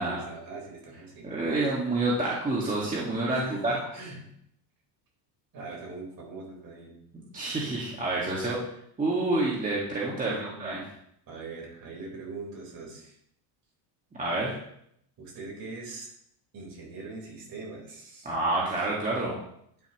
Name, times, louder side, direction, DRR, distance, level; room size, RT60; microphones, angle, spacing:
voice 1, 0.0-1.3 3.3-4.3 5.5-7.0 10.2-10.9 11.3-13.2 14.4-14.6 15.2-16.1 16.5-18.3, right 3 dB, 45° right, -2 dB, 4.6 m, -42 dB
voice 2, 1.2-3.7 7.3-8.6 9.0-10.8 14.1-14.5 18.2-19.4, right 2 dB, 15° right, -5 dB, 2.0 m, -28 dB
11.5 x 10.0 x 3.1 m, 0.72 s
cardioid pair, 155°, 47 cm